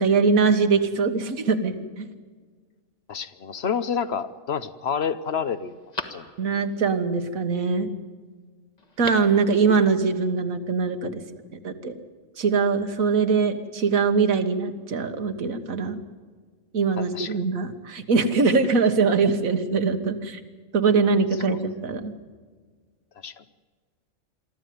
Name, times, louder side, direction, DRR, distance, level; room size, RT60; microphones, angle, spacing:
voice 1, 0.0-2.1 6.4-7.9 9.0-11.2 11.6-11.9 12.4-16.0 16.7-20.4 20.7-22.1, right 4 dB, 80° right, 8 dB, 1.8 m, -22 dB
voice 2, 3.1-5.8 6.1-6.2 17.0-17.4 21.5-21.6 23.2-23.4, left 7 dB, 55° left, 13 dB, 0.9 m, -29 dB
Telephone, 3.6-4.2 4.8-4.9 5.2-6.8 8.8-9.4 9.7-9.8, left 3 dB, 30° left, 1.5 m, -38 dB
23.5 x 14.0 x 9.3 m, 1.5 s
omnidirectional pair, 1.4 m